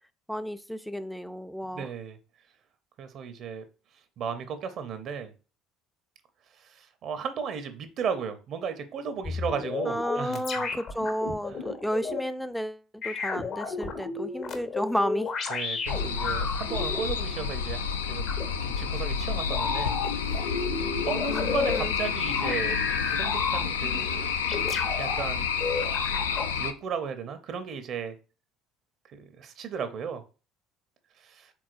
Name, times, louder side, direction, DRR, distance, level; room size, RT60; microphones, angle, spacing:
voice 1, 0.3-1.9 9.9-15.3 21.3-21.9, equal, ahead, 0.4 m, -32 dB
voice 2, 1.7-2.2 3.0-3.6 4.2-5.3 6.6-10.7 11.5-11.6 15.5-18.3 18.6-19.9 20.2-20.5 21.1-22.8 23.1-24.3 25.0-25.5 26.6-28.1 29.1-30.2 31.2-31.5, right 6 dB, 55° right, 0.6 m, -35 dB
sound 1, 9.2-12.2 13.0-17.0 18.3-18.5 19.5-21.8 22.3-24.0 24.5-25.2 25.6-26.5, left 4 dB, 50° left, 0.9 m, -32 dB
sound 2, 15.9-26.7, left 6 dB, 85° left, 0.3 m, -29 dB
4.7 x 3.6 x 2.5 m
hypercardioid pair, 60°, 0 cm